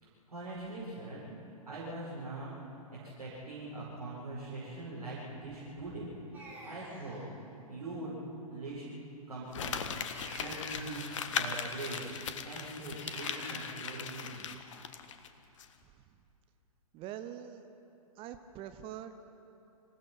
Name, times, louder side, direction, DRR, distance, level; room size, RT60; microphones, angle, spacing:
voice 1, 0.0-1.2 1.6-2.5 2.9-6.1 6.6-7.2 7.7-8.2 8.5-8.8 9.3-14.3, right 2 dB, 75° right, -8 dB, 6.8 m, -42 dB
sound 1, 6.3-7.2 10.1-11.4 13.0-13.6, right 1 dB, 10° right, 5.5 m, -48 dB
Crumpling crinkling, 9.5-15.3 15.6-15.7, left 7 dB, 55° left, 1.3 m, -38 dB
voice 2, 16.9-17.7 18.2-19.1, right 10 dB, 30° right, 9 dB, 1.0 m, -43 dB
26.5 x 16.5 x 5.8 m, 2.8 s
figure-of-eight pair, 115°, 19 cm